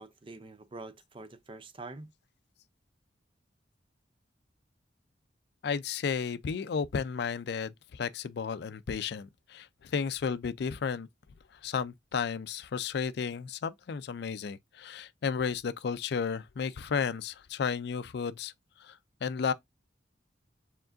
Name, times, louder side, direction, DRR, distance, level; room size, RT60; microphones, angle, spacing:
voice 1, 0.0-2.1, right 3 dB, 30° right, 0.5 m, -45 dB
voice 2, 5.6-11.1 11.6-18.5 18.8-19.5, left 6 dB, 60° left, 0.4 m, -33 dB
4.7 x 3.6 x 2.5 m
head